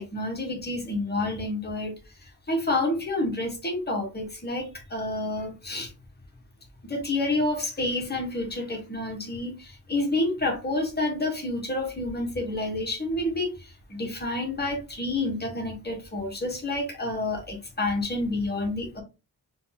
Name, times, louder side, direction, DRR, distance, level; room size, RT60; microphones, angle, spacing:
voice 1, 0.0-1.9 2.5-5.9 6.8-19.0, left 2 dB, 25° left, 1.3 m, -29 dB
4.0 x 2.6 x 3.6 m
wide cardioid pair, 130°, 38 cm